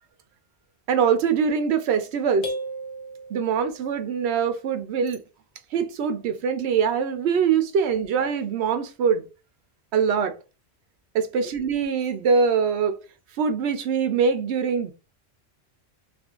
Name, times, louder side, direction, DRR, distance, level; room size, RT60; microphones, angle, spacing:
voice 1, 0.9-2.5 3.3-5.2 5.7-9.3 9.9-10.3 11.1-13.0 13.4-14.9, right 6 dB, 75° right, 0.9 m, -23 dB
sound 1, 2.4-4.0, equal, 65° left, 1.0 m, -35 dB
2.6 x 2.5 x 3.6 m
omnidirectional pair, 1.1 m